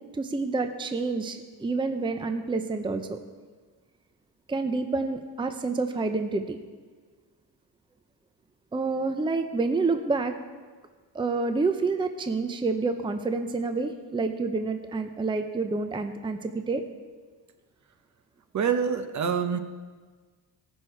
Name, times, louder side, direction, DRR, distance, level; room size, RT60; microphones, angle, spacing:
voice 1, 0.1-3.2 4.5-6.6 8.7-10.3 11.1-16.8, right 3 dB, 15° right, 7 dB, 0.6 m, -28 dB
voice 2, 18.5-19.6, right 7 dB, 50° right, 9 dB, 0.8 m, -26 dB
17.0 x 6.4 x 4.5 m, 1.5 s
cardioid pair, 110°, 37 cm